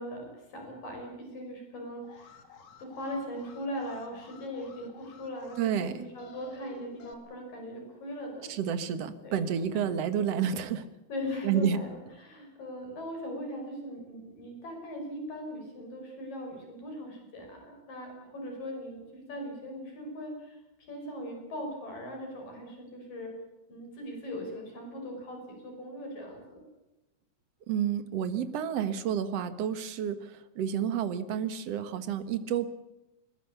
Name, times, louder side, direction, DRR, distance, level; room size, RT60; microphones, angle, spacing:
voice 1, 0.0-8.5 9.2-9.9 11.1-20.6 20.9-23.3 23.7-26.6, equal, 75° left, 2 dB, 7.4 m, -40 dB
Alarm, 2.0-7.1, left 6 dB, 50° left, 2.8 m, -54 dB
voice 2, 5.6-6.0 8.5-10.9 11.4-11.8 27.7-32.7, right 8 dB, 55° right, 11 dB, 2.2 m, -30 dB
21.0 x 21.0 x 7.0 m, 0.98 s
omnidirectional pair, 3.9 m